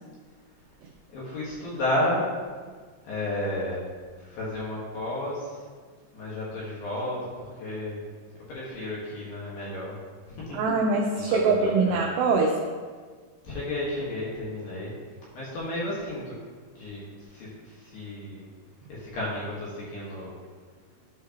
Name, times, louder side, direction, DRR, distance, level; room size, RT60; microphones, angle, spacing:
voice 1, 1.1-2.3 3.0-3.9 4.2-5.6 6.1-7.3 7.6-8.0 8.5-9.9 10.3-10.6 11.1-11.4 11.6-12.0 13.4-14.9 15.3-16.3 16.7-18.4 18.9-20.3, left 1 dB, 60° left, -7 dB, 2.7 m, -32 dB
voice 2, 10.5-12.6, right 4 dB, 85° right, 0 dB, 2.4 m, -23 dB
13.0 x 4.9 x 2.9 m, 1.5 s
omnidirectional pair, 5.6 m